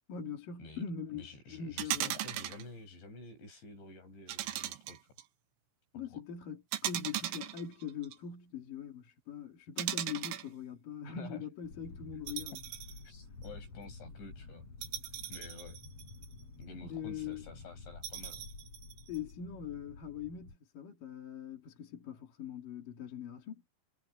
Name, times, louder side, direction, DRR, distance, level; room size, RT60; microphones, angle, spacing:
voice 1, 0.1-1.2 1.5-2.2 5.9-12.6 16.8-17.5 19.1-23.6, left 7 dB, 50° left, 3.9 m, -42 dB
voice 2, 1.1-5.1 6.1-6.2 11.1-11.5 13.0-14.7 15.3-15.8 16.6-18.4, left 3 dB, 75° left, 9.6 m, -50 dB
sound 1, 1.8-2.6 4.3-5.2 6.7-8.2 9.8-10.5 12.3-13.0 13.4-13.5 14.8-16.4 18.0-19.2, right 13 dB, 90° right, 3.8 m, -38 dB
sound 2, 11.6-20.6, left 3 dB, 35° left, 6.4 m, -51 dB
omnidirectional pair, 5.2 m